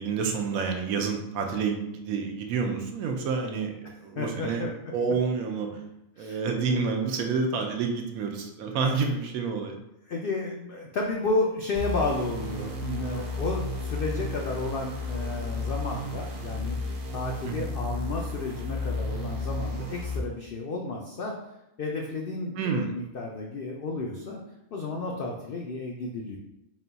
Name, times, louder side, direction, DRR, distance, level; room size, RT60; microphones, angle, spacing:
voice 1, 0.0-3.7 4.0-4.6 4.9-5.8 6.2-9.8 17.4-17.7 22.6-22.9, right 5 dB, 75° right, 3 dB, 1.0 m, -28 dB
voice 2, 4.2-4.9 6.2-6.4 10.1-16.8 17.1-21.3 21.8-24.4 24.7-26.4, left 2 dB, 85° left, 0 dB, 0.5 m, -32 dB
sound 1, 11.7-20.2, left 2 dB, 60° right, 0.7 m, -33 dB
4.1 x 2.3 x 3.9 m, 0.86 s
omnidirectional pair, 1.5 m